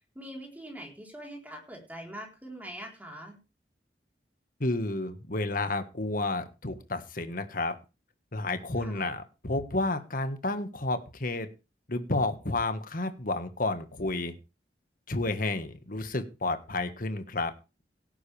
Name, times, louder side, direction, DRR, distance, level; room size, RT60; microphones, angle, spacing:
voice 1, 0.1-3.4 8.8-9.1, right 1 dB, 10° right, 0 dB, 4.0 m, -43 dB
voice 2, 4.6-7.7 8.3-11.5 11.9-14.3 15.1-17.5, left 2 dB, 50° left, 9 dB, 1.6 m, -31 dB
17.5 x 9.4 x 3.4 m, 0.30 s
head